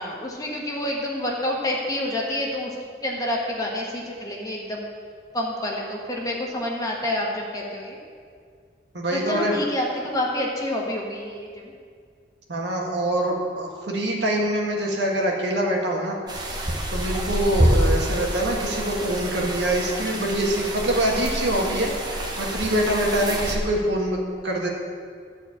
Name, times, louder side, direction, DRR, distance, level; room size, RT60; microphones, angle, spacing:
voice 1, 0.0-2.7 3.0-4.8 5.3-8.0 9.1-11.7, left 1 dB, 20° left, -2 dB, 1.4 m, -28 dB
voice 2, 8.9-9.6 12.5-16.2 16.5-16.6 16.9-24.7, right 1 dB, 75° right, -1 dB, 1.7 m, -24 dB
sound 1, 16.3-23.6, equal, 25° right, 1.1 m, -27 dB
12.5 x 4.5 x 8.5 m, 2.1 s
head